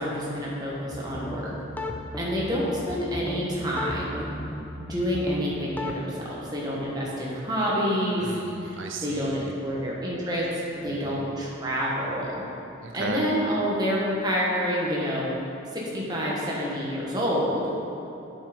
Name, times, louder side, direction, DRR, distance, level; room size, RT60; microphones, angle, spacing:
voice 1, 0.0-1.5 2.1-4.2 4.8-8.3 9.0-10.5 10.8-12.4 12.9-15.3 15.7-17.7, equal, 20° right, -5 dB, 1.4 m, -28 dB
sound 1, 0.9-5.9, left 1 dB, 10° left, 0.3 m, -36 dB
voice 2, 8.2-9.5 10.9-11.2 12.8-13.2, right 3 dB, 70° right, 3 dB, 0.5 m, -36 dB
8.6 x 5.6 x 5.1 m, 2.9 s
head